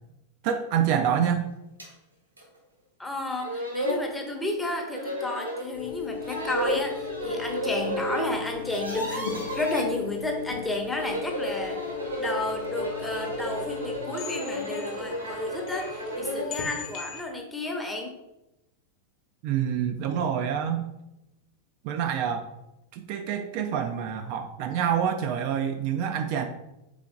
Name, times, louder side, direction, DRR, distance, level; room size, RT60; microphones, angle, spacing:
voice 1, 0.4-1.5 19.4-20.9 21.8-22.5 22.9-26.5, right 8 dB, 45° right, 6 dB, 0.3 m, -27 dB
sound 1, 1.8-1.9 2.4-2.5 3.1-3.2 3.4-4.1 4.9-5.7 6.2-8.3 8.5-9.8 10.8-16.5, equal, 85° right, 1.1 m, -32 dB
voice 2, 3.0-11.8 12.2-18.1, left 2 dB, 5° left, 2 dB, 0.8 m, -32 dB
sound 2, 5.7-14.0, left 7 dB, 70° left, 0.6 m, -36 dB
sound 3, 12.1-17.2, left 6 dB, 40° left, 0.9 m, -42 dB
3.7 x 3.5 x 3.5 m, 0.92 s
figure-of-eight pair, 90°, 0 cm